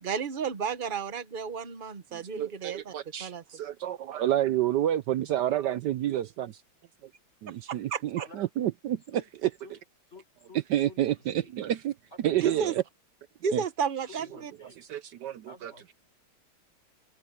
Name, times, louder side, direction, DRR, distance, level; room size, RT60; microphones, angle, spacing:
voice 1, 0.0-2.9 3.2-3.4 7.7-8.2 12.3-12.7 13.4-14.5, right 6 dB, 45° right, 0.7 m, -32 dB
voice 2, 2.1-6.5 7.4-9.5 10.7-11.9 12.2-12.8 13.5-13.6 14.9-15.9, right 12 dB, 75° right, 1.0 m, -29 dB
voice 3, 10.1-11.5 12.1-12.6 13.9-14.8 15.5-15.9, left 3 dB, 30° left, 4.9 m, -52 dB
open air
omnidirectional pair, 2.4 m